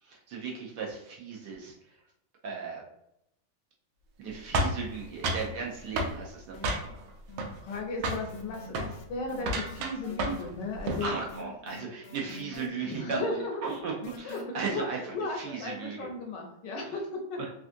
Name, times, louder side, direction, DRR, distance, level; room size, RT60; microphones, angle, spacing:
voice 1, 0.0-2.0 2.4-2.8 4.2-7.0 11.0-13.2 13.6-16.1 16.9-17.0 17.4-17.5, right 5 dB, 70° right, -2 dB, 1.0 m, -36 dB
sound 1, 4.5-5.5 6.0-6.2 6.6-7.1 7.4-7.8 8.0-8.3 8.7-8.9 9.4-10.5 10.7-11.1, right 1 dB, 90° right, 1.4 m, -30 dB
sound 2, 6.5-7.0 7.3-14.4, left 4 dB, 85° left, 1.4 m, -47 dB
voice 2, 7.6-11.1 12.9-13.7 14.0-17.4, left 2 dB, 70° left, 1 dB, 1.2 m, -35 dB
3.5 x 2.3 x 2.5 m, 0.80 s
omnidirectional pair, 2.2 m